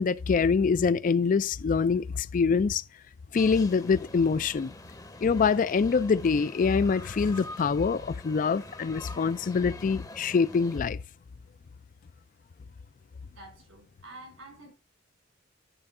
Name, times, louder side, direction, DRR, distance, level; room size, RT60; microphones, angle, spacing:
voice 1, 0.0-2.8 3.3-4.7 5.2-11.0, left 5 dB, 40° left, 0.3 m, -25 dB
sound 1, 3.4-10.8, left 2 dB, 15° left, 0.7 m, -45 dB
voice 2, 13.3-14.7, right 2 dB, 90° right, 4.6 m, -48 dB
11.0 x 4.5 x 3.7 m
head